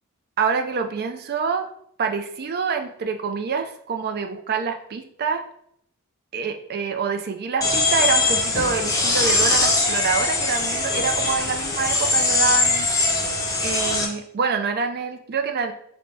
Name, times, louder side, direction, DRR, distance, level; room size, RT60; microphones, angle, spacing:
voice 1, 0.4-1.7 2.0-5.4 6.3-12.9 13.6-15.7, right 5 dB, 45° right, 6 dB, 0.4 m, -26 dB
sound 1, 7.6-14.1, left 3 dB, 15° left, 0.6 m, -21 dB
3.4 x 2.1 x 3.9 m, 0.68 s
head